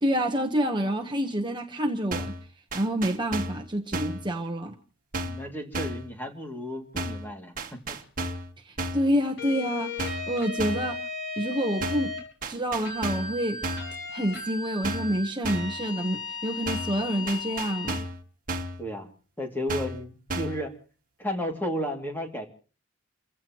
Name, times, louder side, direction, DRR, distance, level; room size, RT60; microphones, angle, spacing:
voice 1, 0.0-2.3 2.7-4.8 8.6-9.9 10.3-11.0 11.4-12.1 12.5-13.6 14.1-18.0, equal, 20° right, 3 dB, 1.1 m, -28 dB
sound 1, 2.1-2.4 2.7-3.6 3.9-4.2 5.1-5.5 5.7-6.1 7.0-7.3 7.6-8.5 8.8-9.1 10.0-10.3 10.6-10.9 11.8-12.1 12.4-13.3 13.6-13.9 14.8-15.2 15.4-15.8 16.7-17.0 17.3-18.2 18.5-18.8 19.7-20.0 20.3-20.6, right 1 dB, 40° right, 1.8 m, -33 dB
voice 2, 5.2-8.0 18.8-19.1 19.4-20.8 21.2-22.5, equal, 10° left, 2 dB, 2.5 m, -33 dB
sound 2, 9.4-12.2 12.8-18.0, left 4 dB, 65° left, 6.4 m, -36 dB
30.0 x 16.0 x 3.1 m, 0.39 s
head